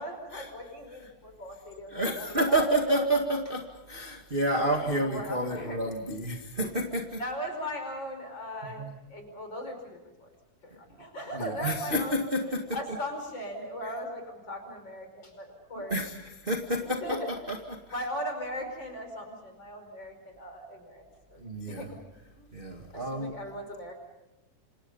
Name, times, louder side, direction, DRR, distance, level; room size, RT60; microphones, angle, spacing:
voice 1, 0.0-3.0 4.8-5.8 7.2-10.3 10.6-12.2 12.7-15.9 16.8-17.3 17.9-21.0 21.3-22.0 22.4-22.5 22.9-23.9, equal, 30° left, 5 dB, 5.7 m, -38 dB
voice 2, 1.9-7.2 8.6-9.0 11.3-12.8 13.8-13.9 15.8-17.8 21.4-21.9 22.5-23.4, right 1 dB, 25° right, 1 dB, 1.3 m, -30 dB
28.0 x 27.5 x 5.6 m, 1.0 s
omnidirectional pair, 4.1 m